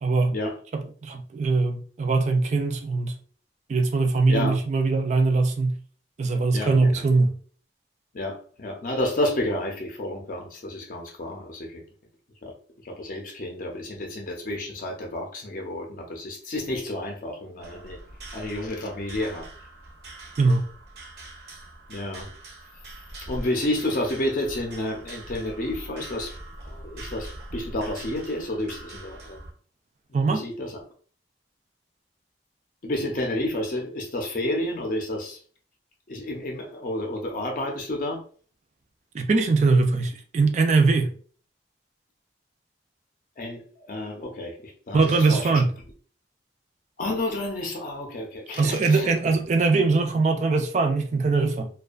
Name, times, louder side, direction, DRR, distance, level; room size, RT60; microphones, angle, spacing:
voice 1, 0.0-0.4 0.7-3.2 3.7-5.8 6.2-7.4 20.4-20.6 30.1-30.5 39.1-41.1 44.9-45.7 48.6-51.7, right 3 dB, 40° right, 0.3 m, -22 dB
voice 2, 4.3-4.6 6.5-7.1 8.1-11.8 12.4-12.5 12.8-18.0 18.3-19.5 21.9-22.3 23.2-26.3 26.6-29.4 30.3-30.8 32.8-35.4 36.1-38.2 43.4-45.6 47.0-49.1, left 1 dB, 50° left, 0.5 m, -30 dB
sound 1, 17.6-29.5, right 1 dB, 70° right, 0.7 m, -42 dB
2.5 x 2.3 x 2.3 m
head